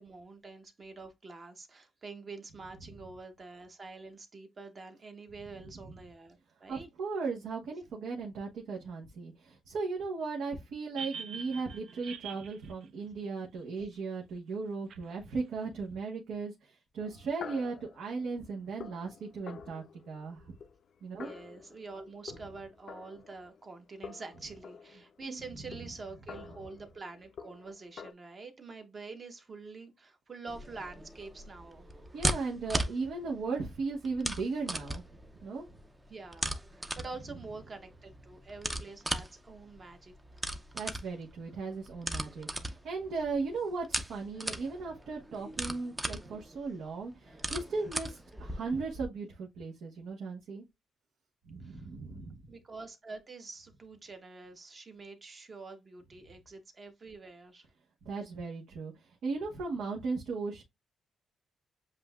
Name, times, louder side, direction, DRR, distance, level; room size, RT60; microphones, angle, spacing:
voice 1, 0.0-6.9 21.1-31.9 36.1-40.1 51.6-51.9 52.5-57.7, right 3 dB, 30° right, 1.0 m, -46 dB
voice 2, 6.7-20.4 21.0-21.3 32.1-35.0 35.4-35.7 40.7-50.6 51.5-52.4 58.0-58.9 59.2-60.6, right 4 dB, 80° right, 1.1 m, -37 dB
sound 1, 11.0-14.0 14.9-15.0, right 6 dB, 60° right, 0.5 m, -44 dB
sound 2, 17.0-23.8 24.0-28.1, left 6 dB, 50° left, 0.4 m, -49 dB
sound 3, 30.5-49.1, right 1 dB, 10° right, 0.5 m, -38 dB
7.6 x 2.6 x 2.3 m
cardioid pair, 150°, 0 cm